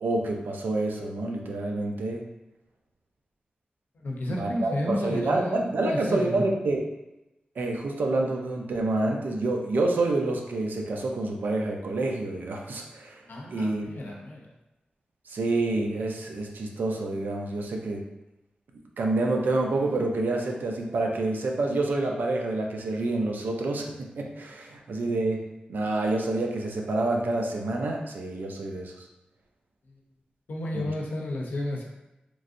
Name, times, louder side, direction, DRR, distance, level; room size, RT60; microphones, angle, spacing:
voice 1, 0.0-2.2 4.3-6.8 7.6-13.2 13.5-13.9 15.3-18.0 19.0-25.4 25.7-29.0 30.7-30.9, right 2 dB, 90° right, 1 dB, 0.4 m, -28 dB
voice 2, 4.0-6.5 13.3-14.5 30.5-31.9, left 1 dB, 80° left, -1 dB, 0.6 m, -32 dB
3.1 x 2.5 x 2.5 m, 0.95 s
wide cardioid pair, 140°, 3 cm